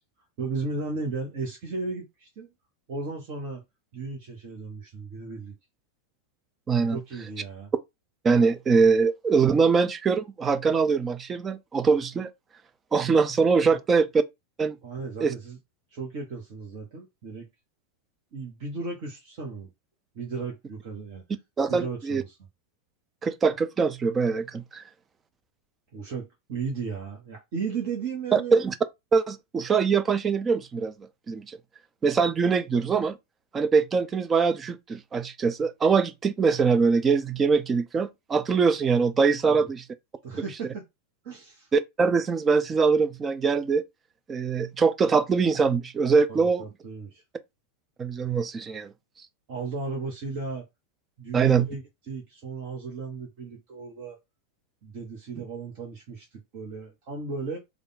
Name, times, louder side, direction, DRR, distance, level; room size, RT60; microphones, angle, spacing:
voice 1, 0.4-2.5 2.9-3.6 3.9-5.6 6.9-7.7 13.7-13.8 14.8-15.6 15.9-17.5 18.3-19.7 20.1-21.2 21.7-22.4 25.9-28.6 39.5-39.7 40.2-40.8 41.2-41.7 46.3-47.2 49.5-50.6 51.2-54.2 54.8-57.6, right 4 dB, 45° right, 1.1 m, -35 dB
voice 2, 6.7-7.0 8.2-12.3 12.9-14.1 14.6-14.8 15.2-15.3 21.6-22.2 23.2-24.8 28.3-28.7 29.1-30.9 31.3-31.5 32.0-33.1 33.5-39.8 41.7-43.8 44.3-46.6 48.0-48.9 51.3-51.7, right 5 dB, 20° right, 0.5 m, -23 dB
3.4 x 2.4 x 3.9 m
figure-of-eight pair, 90°, 0 cm